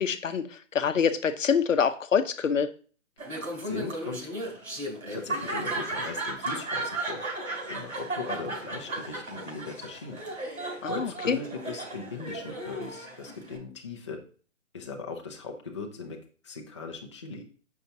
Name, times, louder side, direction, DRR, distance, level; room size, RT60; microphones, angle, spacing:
voice 1, 0.0-2.7 10.8-11.4, left 6 dB, 70° left, 11 dB, 0.8 m, -26 dB
Laughter, 3.2-13.6, right 2 dB, 85° right, 3.0 m, -35 dB
voice 2, 3.6-4.3 5.1-7.2 7.7-10.2 10.8-14.2 14.7-16.2 16.4-17.4, left 4 dB, 25° left, 0 dB, 0.5 m, -39 dB
6.6 x 5.6 x 2.7 m, 0.40 s
figure-of-eight pair, 155°, 40 cm